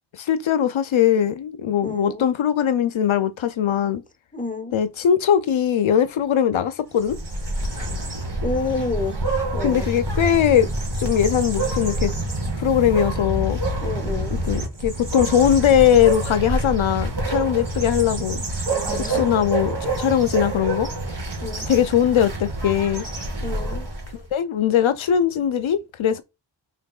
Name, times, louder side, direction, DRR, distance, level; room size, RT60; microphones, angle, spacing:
voice 1, 0.2-4.0 4.7-7.2 9.6-10.7 11.0-12.1 12.6-13.6 14.3-18.4 19.1-20.9 21.7-23.0 24.1-26.2, left 9 dB, 80° left, 0.5 m, -20 dB
voice 2, 1.8-2.3 4.3-4.8 7.7-7.9 8.4-9.2 9.5-9.9 13.8-14.4 18.7-19.3 21.4-21.7 23.4-23.9, left 3 dB, 15° left, 1.0 m, -29 dB
sound 1, 6.9-24.2, right 2 dB, 55° right, 1.8 m, -27 dB
5.8 x 3.5 x 2.3 m
wide cardioid pair, 65°, 47 cm